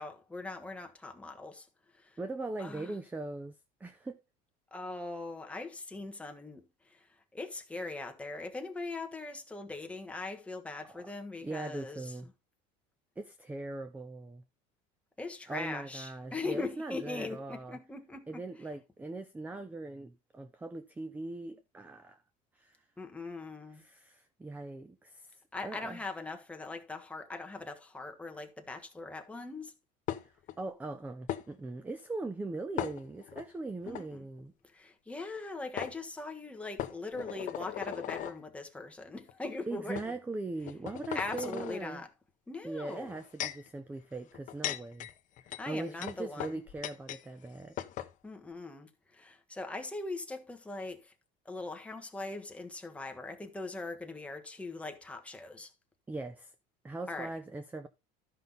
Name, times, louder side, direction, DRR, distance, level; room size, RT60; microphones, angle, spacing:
voice 1, 0.0-1.7 2.0-2.1 2.6-2.9 4.7-7.0 7.3-12.1 15.2-18.4 23.0-23.8 25.5-29.7 33.9-34.2 34.7-40.2 41.1-42.1 42.5-43.2 45.6-46.6 48.2-51.1 51.4-55.7 57.1-57.3, left 3 dB, 5° left, 1.3 m, -41 dB
voice 2, 2.2-3.5 3.8-4.2 10.8-11.1 11.4-12.3 13.2-14.4 15.5-17.8 18.3-22.2 22.6-22.8 23.7-26.0 30.6-34.5 39.7-42.0 42.6-45.1 45.7-47.8 56.1-56.5 56.8-57.9, right 2 dB, 10° right, 0.6 m, -40 dB
sound 1, 30.1-30.6 31.3-31.4 32.8-33.4 33.9-34.0 35.3-35.4 35.8-35.9 36.8-38.4 39.2-39.3 40.0-40.1 40.6-41.8 42.9-43.7 44.3-47.2 47.5-47.6 47.8-48.1, left 12 dB, 45° left, 0.9 m, -38 dB
12.5 x 5.6 x 4.0 m
cardioid pair, 145°, 18 cm